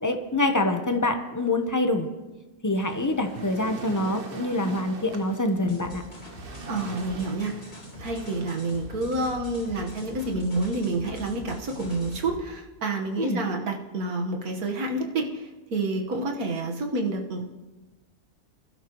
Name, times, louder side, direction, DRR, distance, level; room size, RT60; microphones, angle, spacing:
voice 1, 0.0-2.1 2.6-6.0 13.2-13.4, left 2 dB, 20° left, 5 dB, 0.6 m, -25 dB
Waves surf, 2.7-9.0, right 3 dB, 40° right, 1.3 m, -43 dB
sound 1, 5.7-12.4, left 1 dB, 60° left, 4.1 m, -43 dB
voice 2, 6.7-7.6 8.0-17.5, right 2 dB, 75° right, 2 dB, 1.9 m, -29 dB
23.5 x 12.0 x 3.0 m, 1.1 s
omnidirectional pair, 1.6 m